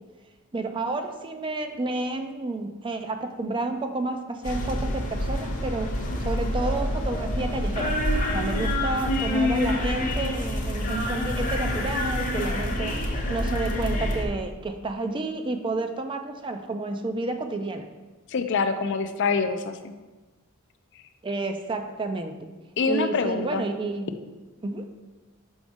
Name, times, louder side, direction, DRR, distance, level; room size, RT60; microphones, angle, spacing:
voice 1, 0.5-8.0 8.3-13.0 13.3-17.9 21.2-22.3 22.9-24.1 24.6-24.9, right 2 dB, 25° right, 6 dB, 0.4 m, -30 dB
sound 1, 4.4-14.2, left 1 dB, 35° left, 0.8 m, -27 dB
voice 2, 18.3-19.9 22.8-23.7, left 4 dB, 55° left, 8 dB, 0.4 m, -25 dB
6.2 x 5.0 x 3.5 m, 1.2 s
head